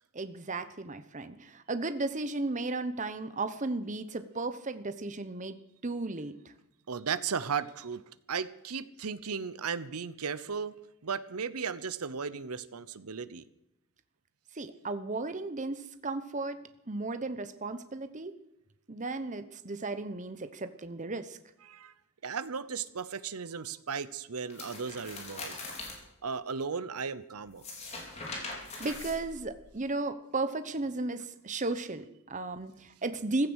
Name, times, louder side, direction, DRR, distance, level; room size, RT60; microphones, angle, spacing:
voice 1, 0.1-5.6 5.8-6.3 14.5-16.6 16.9-18.3 18.9-21.4 28.8-33.5, right 2 dB, 35° right, 10 dB, 0.9 m, -35 dB
voice 2, 6.9-8.0 8.3-10.7 11.0-13.4 21.7-21.9 22.2-25.6 26.2-27.6, right 6 dB, 85° right, 15 dB, 0.8 m, -35 dB
sound 1, 24.5-26.0 27.5-29.7, left 3 dB, 30° left, 4.2 m, -41 dB
16.0 x 14.0 x 6.4 m, 0.86 s
head